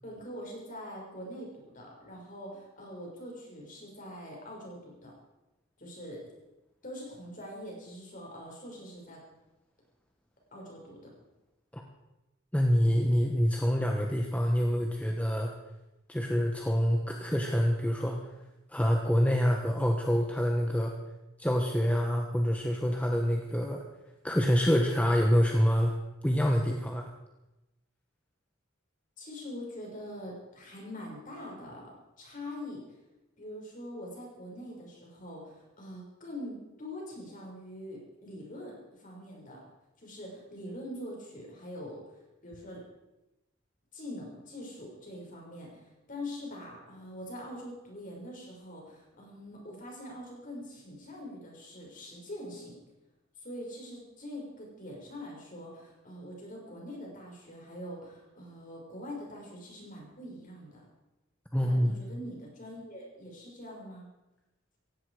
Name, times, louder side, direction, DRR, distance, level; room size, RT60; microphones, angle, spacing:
voice 1, 0.0-5.1 5.8-6.2 6.8-9.2 10.5-11.1 29.2-31.9 32.2-32.8 33.4-39.6 40.0-42.0 42.4-42.8 43.9-52.7 53.4-60.8 61.6-64.1, left 1 dB, 40° left, -1 dB, 6.0 m, -43 dB
voice 2, 12.5-15.5 16.1-18.2 18.7-20.9 21.4-23.8 24.2-26.0 26.2-27.1 61.5-61.9, equal, 5° left, 2 dB, 1.2 m, -26 dB
17.0 x 16.0 x 5.0 m, 0.98 s
head